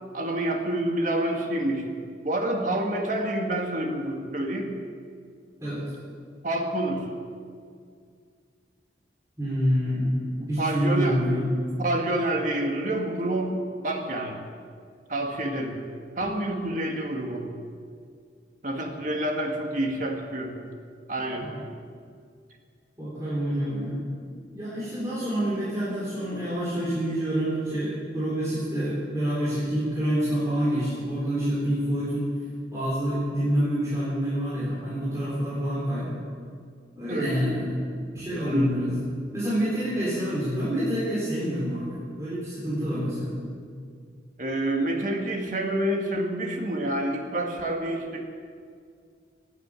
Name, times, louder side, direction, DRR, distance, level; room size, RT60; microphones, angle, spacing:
voice 1, 0.1-1.8 2.2-4.7 6.4-7.0 10.4-11.2 11.8-14.4 15.1-15.8 16.2-17.5 18.6-20.6 21.1-21.5 37.1-37.3 38.2-38.8 44.4-48.2, right 1 dB, 45° right, 2 dB, 1.9 m, -28 dB
voice 2, 9.4-11.5 21.4-21.6 23.0-24.1 24.5-32.3 32.7-36.2 37.0-37.8 38.1-43.4, equal, 15° right, -9 dB, 4.1 m, -27 dB
15.5 x 9.4 x 9.0 m, 2.2 s
head